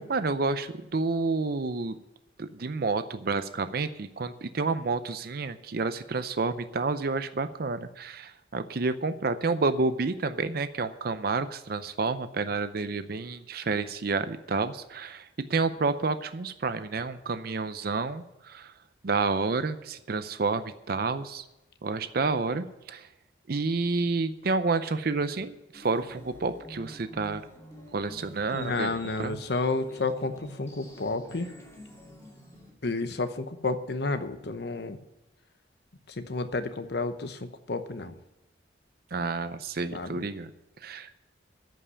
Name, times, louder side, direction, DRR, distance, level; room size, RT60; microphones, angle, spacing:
voice 1, 0.1-1.9 2.4-18.8 19.0-21.5 21.8-23.1 23.5-27.4 27.9-29.4 39.1-40.5 40.8-41.2, right 4 dB, 55° right, 11 dB, 0.6 m, -29 dB
sound 1, 25.7-32.7, equal, 15° left, 2.5 m, -48 dB
voice 2, 28.5-31.5 32.8-35.0 36.1-38.1 39.9-40.1, left 3 dB, 60° left, 9 dB, 0.8 m, -31 dB
13.5 x 5.6 x 9.5 m, 0.94 s
head